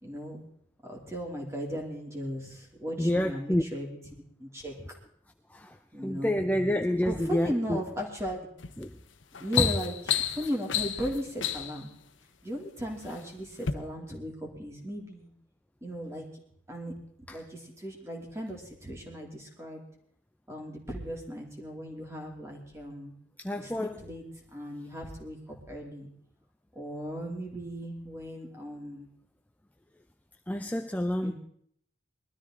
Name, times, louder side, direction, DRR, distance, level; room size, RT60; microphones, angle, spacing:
voice 1, 0.0-0.4 0.8-4.0 4.4-4.7 5.9-6.4 7.0-8.5 9.4-11.9 12.4-15.3 15.8-16.2 16.7-16.9 17.3-19.8 20.5-23.1 23.6-24.2 24.5-26.1 26.7-29.1 31.2-31.3, equal, 15° right, 0 dB, 2.8 m, -37 dB
voice 2, 3.0-3.6 5.5-5.8 6.0-7.8 8.8-8.9 9.6-9.7 17.3-17.4 23.4-24.0 30.5-31.3, left 1 dB, 10° left, 5 dB, 0.5 m, -28 dB
sound 1, 8.6-8.8 9.2-11.8 12.6-13.2 13.6-13.7, left 10 dB, 80° left, 1.0 m, -30 dB
21.0 x 13.0 x 3.8 m, 0.67 s
head